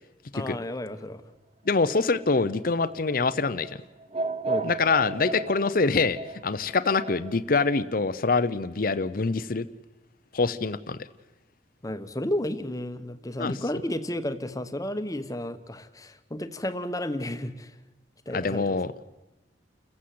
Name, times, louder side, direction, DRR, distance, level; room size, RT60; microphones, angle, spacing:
voice 1, 0.3-1.2 4.5-4.7 11.8-17.7 18.3-18.8, left 1 dB, 20° left, 10 dB, 1.1 m, -32 dB
voice 2, 1.7-3.7 4.6-9.7 10.3-11.0 13.4-13.6 18.3-18.9, left 4 dB, 50° left, 13 dB, 0.7 m, -25 dB
sound 1, 1.7-7.3, right 3 dB, 35° right, 1.1 m, -35 dB
29.5 x 15.0 x 7.8 m, 1.1 s
head